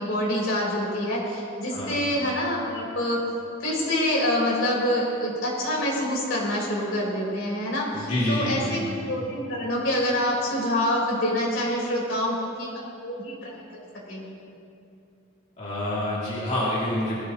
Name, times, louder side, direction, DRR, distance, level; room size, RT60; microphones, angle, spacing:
voice 1, 0.0-3.2 3.6-14.3, left 1 dB, 70° left, -4 dB, 4.1 m, -26 dB
voice 2, 7.9-8.7 15.6-17.2, left 1 dB, 35° left, -8 dB, 2.5 m, -27 dB
20.0 x 15.0 x 3.0 m, 2.5 s
head